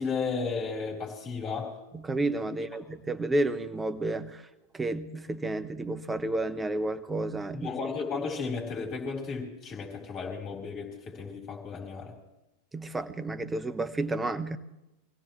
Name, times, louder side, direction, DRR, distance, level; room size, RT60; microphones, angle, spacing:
voice 1, 0.0-1.7 7.5-12.1, left 4 dB, 30° left, 0 dB, 3.9 m, -34 dB
voice 2, 1.9-4.4 4.7-7.7 12.7-14.6, right 2 dB, 10° right, 10 dB, 0.8 m, -31 dB
24.0 x 16.5 x 3.2 m, 0.92 s
figure-of-eight pair, 90°, 0 cm